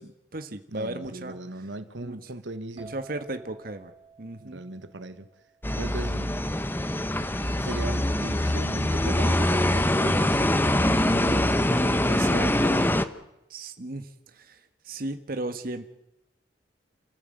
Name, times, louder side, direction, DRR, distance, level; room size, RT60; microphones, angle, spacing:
voice 1, 0.0-1.4 2.0-2.2 2.7-3.9 4.2-4.6 12.1-12.7 13.5-14.6 14.8-15.8, right 2 dB, 50° right, 8 dB, 1.4 m, -36 dB
voice 2, 0.7-2.9 4.4-5.3 5.8-6.3 7.6-12.9, right 2 dB, 85° right, 11 dB, 1.4 m, -38 dB
sound 1, 2.8-6.4, right 4 dB, 30° right, 2.8 m, -52 dB
sound 2, 5.6-13.0, left 1 dB, 10° left, 0.9 m, -24 dB
28.0 x 14.5 x 7.8 m, 0.91 s
head